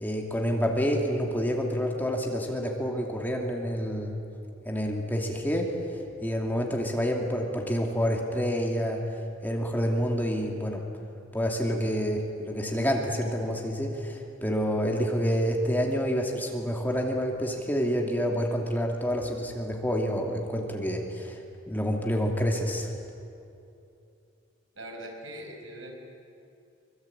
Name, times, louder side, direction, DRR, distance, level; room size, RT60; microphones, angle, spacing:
voice 1, 0.0-4.2 4.6-5.7 6.2-9.0 9.4-10.8 11.3-21.4 21.7-22.9, equal, 10° left, 1 dB, 2.7 m, -28 dB
voice 2, 24.7-26.1, right 1 dB, 80° right, 1 dB, 5.6 m, -41 dB
24.5 x 23.5 x 8.9 m, 2.6 s
head